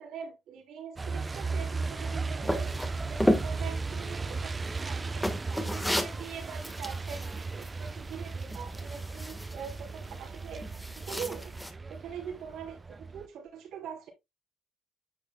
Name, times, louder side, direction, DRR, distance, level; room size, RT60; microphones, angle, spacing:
voice 1, 0.0-14.1, right 7 dB, 80° right, 3.2 m, -43 dB
Truck, 1.0-13.3, right 4 dB, 30° right, 0.7 m, -36 dB
sound 1, 2.4-11.7, equal, 5° left, 1.4 m, -35 dB
9.4 x 6.6 x 2.2 m
cardioid pair, 90°, 0 cm